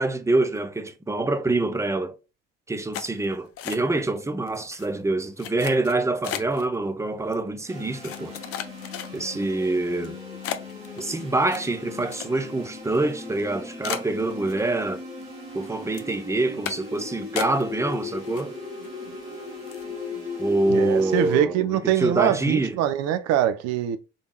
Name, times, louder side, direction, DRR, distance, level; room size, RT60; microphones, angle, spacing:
voice 1, 0.0-2.2 2.7-8.4 9.1-10.2 11.0-15.0 15.5-18.6 20.4-22.8, right 2 dB, 10° right, 0.6 m, -25 dB
sound 1, 2.9-4.2 4.5-4.9 5.4-6.7 7.3-7.4 8.0-9.4 9.9-10.1 10.4-12.6 12.9-13.0 13.4-13.5 13.8-14.9 15.2-15.6 15.9-16.1 16.6-17.0 17.4-17.9 18.2-18.9 19.2-19.3 19.7-19.9, left 10 dB, 50° left, 0.6 m, -35 dB
sound 2, 7.7-21.3, left 3 dB, 80° right, 1.5 m, -38 dB
voice 2, 20.7-24.0, right 10 dB, 60° right, 0.6 m, -23 dB
3.9 x 3.4 x 2.3 m
figure-of-eight pair, 50°, 30 cm